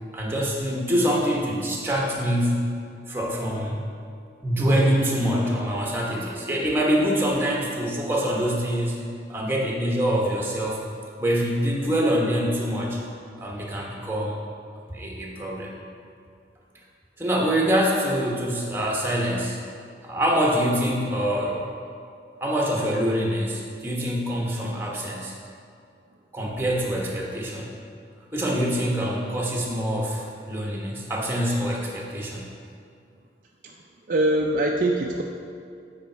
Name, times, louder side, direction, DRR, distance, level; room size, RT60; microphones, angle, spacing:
voice 1, 0.1-2.7 3.1-3.8 4.4-10.8 11.2-13.0 13.4-14.4 14.9-15.7 17.2-19.6 20.0-21.6 22.4-25.3 26.3-27.7 28.3-32.5, equal, 10° right, -2 dB, 1.0 m, -25 dB
voice 2, 34.1-35.2, right 1 dB, 45° right, 1 dB, 0.4 m, -23 dB
8.4 x 5.1 x 4.5 m, 2.4 s
head